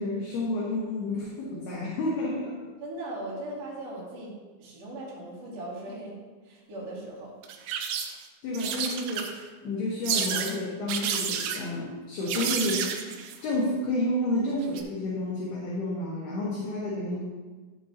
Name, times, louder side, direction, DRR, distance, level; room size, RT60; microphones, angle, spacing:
voice 1, 0.0-2.5 8.4-9.3 9.6-12.9 13.4-17.2, left 1 dB, 65° left, -5 dB, 3.0 m, -30 dB
voice 2, 2.8-4.3 4.6-6.1 6.4-7.3 9.6-9.9, right 1 dB, 40° right, -9 dB, 3.1 m, -38 dB
sound 1, 7.4-8.2 8.5-9.5 10.0-10.6 10.9-11.6 12.3-13.4 14.6-14.8, right 7 dB, 90° right, 3.3 m, -30 dB
13.5 x 7.7 x 3.0 m, 1.3 s
omnidirectional pair, 5.7 m